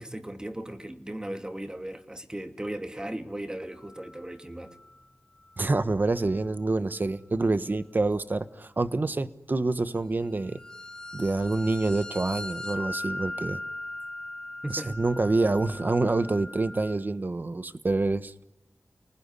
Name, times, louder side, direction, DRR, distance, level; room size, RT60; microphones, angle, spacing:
voice 1, 0.0-4.8 14.6-15.0, right 1 dB, 15° right, 2.5 m, -37 dB
sound 1, 3.8-4.2 4.7-4.9 10.4-17.0, left 1 dB, 15° left, 1.6 m, -39 dB
voice 2, 5.6-10.6 11.1-13.6 14.7-18.4, right 2 dB, 45° right, 1.2 m, -27 dB
30.0 x 20.0 x 9.8 m
wide cardioid pair, 70°, 5 cm